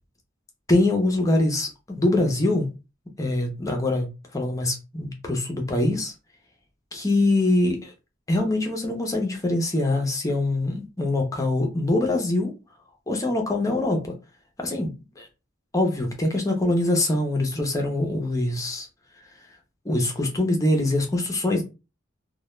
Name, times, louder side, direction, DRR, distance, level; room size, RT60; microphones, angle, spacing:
voice 1, 0.7-2.7 3.2-4.1 4.3-6.1 6.9-7.9 8.3-12.5 13.1-14.1 14.6-14.9 15.2-15.3 15.7-18.9 19.8-21.6, left 2 dB, 15° left, 0.5 m, -23 dB
2.1 x 2.1 x 3.0 m
head